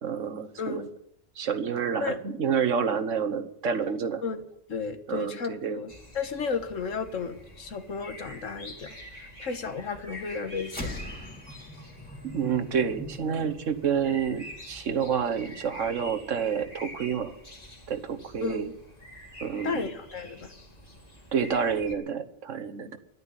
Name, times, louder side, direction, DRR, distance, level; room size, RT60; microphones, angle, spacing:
voice 1, 0.0-0.9 1.4-4.2 5.1-5.8 12.2-17.3 17.9-18.7 19.4-19.9 21.3-23.0, right 7 dB, 75° right, 8 dB, 1.5 m, -29 dB
voice 2, 0.6-0.9 2.0-2.2 4.2-4.4 4.7-10.9 18.4-18.7 19.6-20.5, left 5 dB, 80° left, 8 dB, 1.7 m, -33 dB
sound 1, 5.9-22.0, equal, 30° left, 2.5 m, -47 dB
sound 2, 10.6-15.3, left 1 dB, 5° left, 2.2 m, -42 dB
11.5 x 9.5 x 9.8 m, 0.74 s
omnidirectional pair, 1.3 m